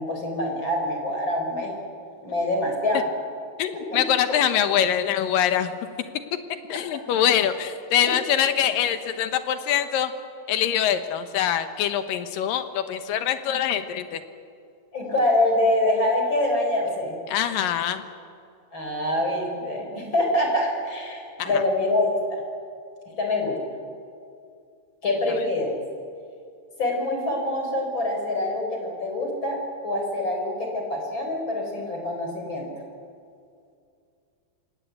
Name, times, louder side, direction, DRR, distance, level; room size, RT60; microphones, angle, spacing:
voice 1, 0.0-1.7 2.2-3.0 3.7-4.0 14.9-17.1 18.7-22.4 23.2-23.6 25.0-25.7 26.8-32.7, left 1 dB, 30° left, 2 dB, 4.8 m, -25 dB
voice 2, 3.6-5.7 6.7-10.1 10.5-14.2 17.3-18.0 21.4-21.5, left 10 dB, 70° left, 9 dB, 2.8 m, -24 dB
27.0 x 18.0 x 8.2 m, 2.4 s
omnidirectional pair, 4.2 m